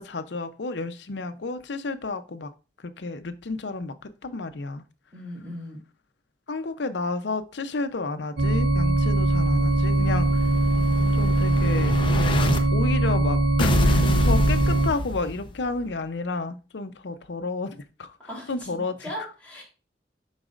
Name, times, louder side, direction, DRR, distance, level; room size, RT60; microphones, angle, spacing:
voice 1, 0.0-2.5 2.8-4.8 6.5-10.3 11.1-18.1 18.5-18.9, left 3 dB, 75° left, 0.7 m, -31 dB
voice 2, 5.1-5.8 18.2-19.6, equal, 10° left, 3.3 m, -38 dB
sound 1, 8.4-14.9, right 2 dB, 75° right, 0.9 m, -21 dB
Explosion, 9.2-12.6 13.6-15.6, left 1 dB, 30° left, 0.7 m, -27 dB
11.5 x 4.1 x 2.5 m
head